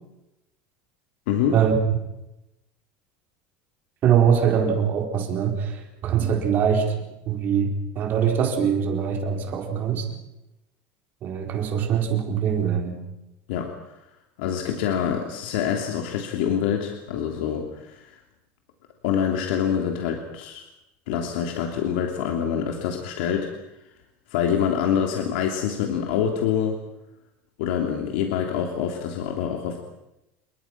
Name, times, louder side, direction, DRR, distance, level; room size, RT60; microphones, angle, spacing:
voice 1, 1.3-1.6 13.5-13.9 14.4-18.2 19.0-20.6 21.1-23.5 24.3-26.8 27.6-29.8, left 8 dB, 85° left, 3 dB, 3.1 m, -26 dB
voice 2, 4.0-6.9 7.3-10.1 11.2-13.0, right 8 dB, 35° right, 4 dB, 4.6 m, -23 dB
29.0 x 22.5 x 6.1 m, 0.90 s
cardioid pair, 165°, 5 cm